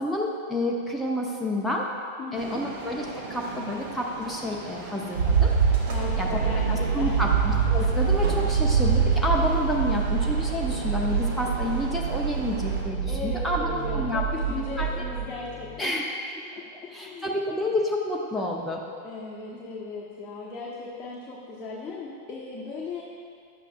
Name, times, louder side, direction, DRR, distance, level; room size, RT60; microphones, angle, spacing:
voice 1, 0.0-1.9 2.3-5.5 6.2-6.4 6.7-14.3 14.8-14.9 15.8-16.1 16.9-18.8, left 1 dB, ahead, -2 dB, 0.7 m, -29 dB
voice 2, 2.2-2.6 5.8-7.3 8.1-8.5 13.1-15.9 16.5-17.3 19.0-23.0, left 3 dB, 20° left, -6 dB, 1.1 m, -37 dB
Train arriving underground, 2.3-12.8, right 3 dB, 50° right, 1.1 m, -38 dB
sound 1, 5.2-15.3, right 6 dB, 75° right, 0.6 m, -25 dB
sound 2, 7.8-15.8, left 8 dB, 40° left, 0.6 m, -41 dB
10.5 x 8.2 x 2.4 m, 2.3 s
figure-of-eight pair, 90°, 0 cm